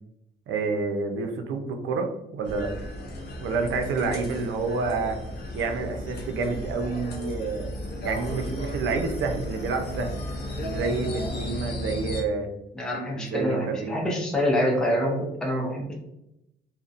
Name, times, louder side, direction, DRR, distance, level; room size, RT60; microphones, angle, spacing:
voice 1, 0.5-2.1 2.3-2.7 3.4-5.2 5.5-7.7 8.0-10.2 10.5-12.5 13.1-14.0, right 4 dB, 85° right, 4 dB, 0.5 m, -28 dB
sound 1, 2.4-12.2, left 1 dB, 55° left, 0.6 m, -34 dB
voice 2, 12.7-15.9, equal, 5° left, -2 dB, 0.4 m, -26 dB
2.6 x 2.0 x 2.4 m, 0.86 s
cardioid pair, 140°, 20 cm